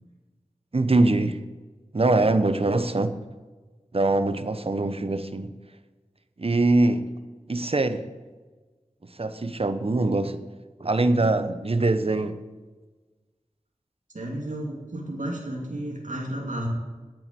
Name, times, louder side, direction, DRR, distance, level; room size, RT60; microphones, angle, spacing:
voice 1, 0.7-1.4 1.9-3.2 3.9-5.5 6.4-7.1 7.5-8.1 9.2-10.4 10.8-12.4, right 2 dB, 45° right, 11 dB, 1.0 m, -23 dB
voice 2, 14.1-16.7, right 1 dB, 70° right, -2 dB, 2.9 m, -32 dB
9.1 x 8.7 x 9.7 m, 1.3 s
wide cardioid pair, 50°, 13 cm